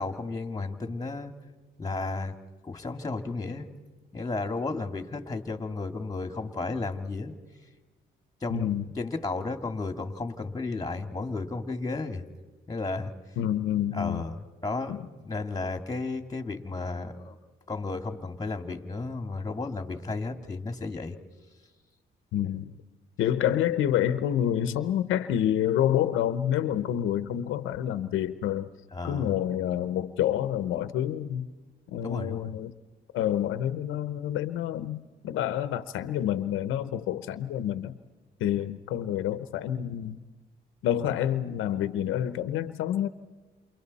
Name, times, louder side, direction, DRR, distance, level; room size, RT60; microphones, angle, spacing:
voice 1, 0.0-1.3 1.8-2.3 2.6-3.7 4.1-7.4 8.4-8.7 9.0-12.2 12.7-13.1 13.9-14.3 14.6-17.4 17.7-21.2 28.9-29.3 31.9-32.6, left 3 dB, 20° left, 6 dB, 2.2 m, -33 dB
voice 2, 8.5-8.9 13.4-14.2 14.9-15.1 22.3-22.7 23.2-28.7 29.0-31.5 31.9-32.7 33.1-38.0 38.4-40.2 40.8-43.1, left 11 dB, 90° left, 12 dB, 0.9 m, -28 dB
28.5 x 28.5 x 4.2 m, 1.3 s
cardioid pair, 90°, 20 cm